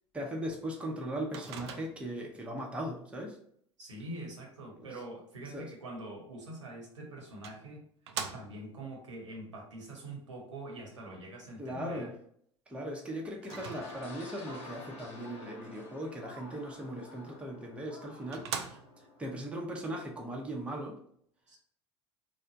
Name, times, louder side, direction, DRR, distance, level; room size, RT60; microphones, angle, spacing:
voice 1, 0.1-3.4 4.8-4.9 5.5-5.7 11.6-12.1 12.7-18.8 19.2-20.9, right 1 dB, 10° right, -1 dB, 0.7 m, -38 dB
Microwave oven, 1.3-2.2 6.6-6.7 7.4-8.8 13.4-14.3 17.4-17.5 18.0-18.1 18.3-19.2, right 7 dB, 65° right, 0.4 m, -42 dB
voice 2, 3.8-7.8 8.3-12.1 21.5-21.6, right 1 dB, 80° right, -1 dB, 1.0 m, -44 dB
sound 1, 13.5-20.6, left 2 dB, 40° left, 0.7 m, -50 dB
3.2 x 2.1 x 3.9 m, 0.66 s
figure-of-eight pair, 70°, 15 cm